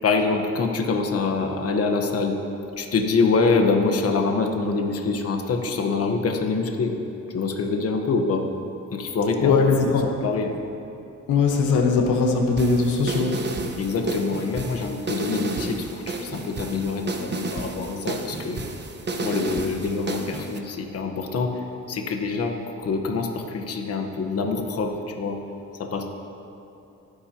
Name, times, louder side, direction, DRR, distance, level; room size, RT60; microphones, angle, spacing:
voice 1, 0.0-2.4 2.8-7.0 7.3-8.5 8.9-9.5 9.9-10.0 10.2-10.5 13.8-18.6 19.2-21.6 21.9-25.4 25.8-26.1, left 4 dB, 50° left, 3 dB, 1.3 m, -25 dB
voice 2, 9.4-10.1 11.3-13.4, left 4 dB, 80° left, 2 dB, 1.3 m, -20 dB
sound 1, 12.6-20.6, right 2 dB, 35° right, 1.3 m, -32 dB
26.0 x 10.0 x 3.0 m, 2.8 s
cardioid pair, 90°, 30 cm